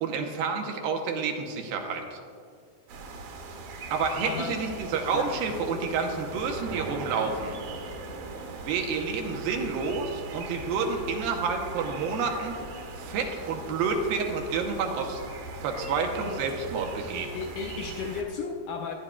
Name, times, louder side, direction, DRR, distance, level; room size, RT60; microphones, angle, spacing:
voice 1, 0.0-2.2 3.9-7.6 8.6-12.5 13.0-15.2 15.6-17.4, right 5 dB, 85° right, 3 dB, 2.7 m, -29 dB
sound 1, 2.9-18.2, right 3 dB, 60° right, 2.4 m, -40 dB
voice 2, 4.2-4.6 5.1-5.4 17.3-18.9, left 6 dB, 80° left, 3 dB, 1.8 m, -34 dB
18.0 x 9.9 x 2.3 m, 2.3 s
omnidirectional pair, 4.1 m